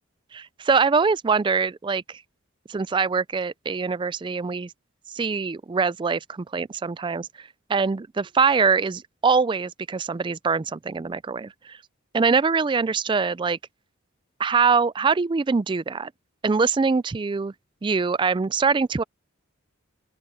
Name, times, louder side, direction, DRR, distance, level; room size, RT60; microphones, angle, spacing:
voice 1, 0.3-2.2 2.7-4.7 5.1-11.8 12.1-13.6 14.4-16.1 16.4-17.5 17.8-19.0, right 5 dB, 20° right, 0.3 m, -23 dB
open air
head